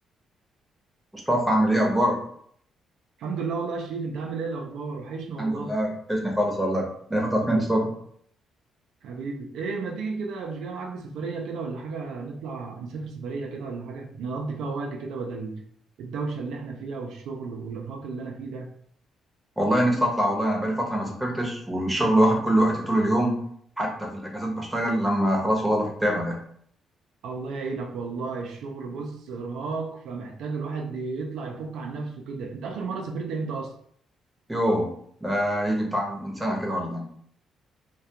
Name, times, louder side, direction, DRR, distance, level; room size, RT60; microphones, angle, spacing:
voice 1, 1.1-2.2 5.4-7.9 19.6-23.4 23.8-26.4 34.5-34.9 35.2-37.0, equal, 10° right, 0 dB, 0.7 m, -24 dB
voice 2, 3.2-5.8 9.0-15.6 16.0-18.7 27.2-33.7, right 4 dB, 85° right, 2 dB, 0.4 m, -33 dB
2.3 x 2.2 x 2.7 m, 0.64 s
cardioid pair, 90°, 0 cm